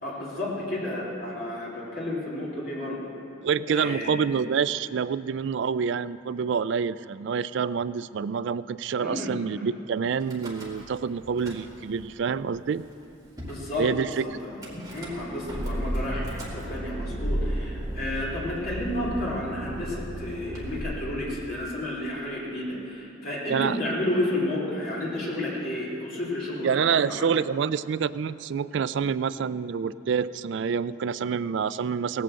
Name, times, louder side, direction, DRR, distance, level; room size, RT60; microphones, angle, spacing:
voice 1, 0.0-3.1 3.7-4.1 9.0-9.6 13.4-27.3, left 1 dB, 45° left, -6 dB, 3.0 m, -31 dB
voice 2, 3.4-12.8 13.8-14.2 23.5-23.8 26.6-32.2, right 6 dB, 60° right, 16 dB, 0.3 m, -27 dB
Car / Engine starting / Idling, 10.2-11.0 11.3-12.0 12.7-12.8 13.0-13.1 13.4-13.7 14.6-20.8, equal, 20° right, 2.0 m, -34 dB
17.5 x 8.9 x 7.6 m, 2.9 s
head